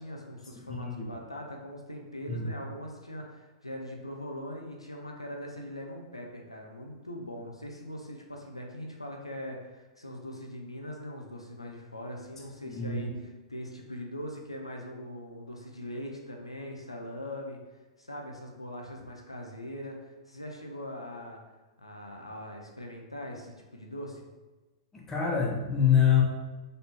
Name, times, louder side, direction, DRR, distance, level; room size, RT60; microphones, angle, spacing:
voice 1, 0.0-17.6 18.0-21.4 21.8-24.2, equal, 90° left, 0 dB, 0.6 m, -41 dB
voice 2, 0.7-1.1 2.3-2.5 12.6-13.1 24.9-26.2, left 8 dB, 15° left, -1 dB, 0.8 m, -25 dB
3.9 x 3.4 x 2.8 m, 1.2 s
figure-of-eight pair, 100°, 3 cm